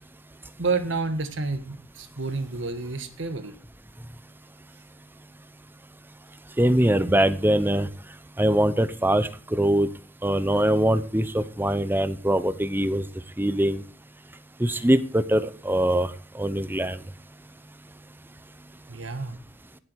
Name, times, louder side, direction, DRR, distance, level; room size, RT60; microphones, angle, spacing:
voice 1, 0.6-3.5 18.9-19.4, right 3 dB, 65° right, 9 dB, 1.4 m, -29 dB
voice 2, 6.6-7.9 8.4-9.9 10.2-13.0 13.4-13.8 14.6-16.1 16.4-17.0, right 1 dB, 10° right, 13 dB, 0.8 m, -22 dB
17.0 x 8.0 x 4.7 m, 0.38 s
head